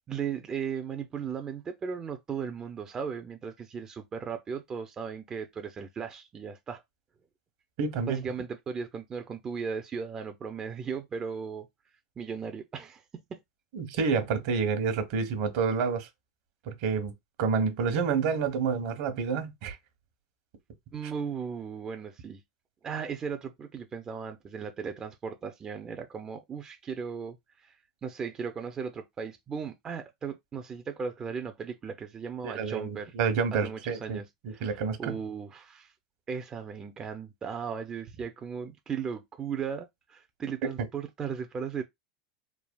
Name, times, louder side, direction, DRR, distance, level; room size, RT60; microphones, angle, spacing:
voice 1, 0.1-6.8 8.1-11.7 12.2-13.0 13.3-13.4 20.9-22.4 22.8-33.1 33.5-35.9 36.3-41.8, right 6 dB, 25° right, 0.4 m, -37 dB
voice 2, 7.8-8.3 13.7-16.1 16.7-17.1 17.4-19.8 32.4-34.2 34.4-35.1, right 5 dB, 65° right, 0.9 m, -28 dB
3.3 x 2.3 x 2.2 m
hypercardioid pair, 110°, 3 cm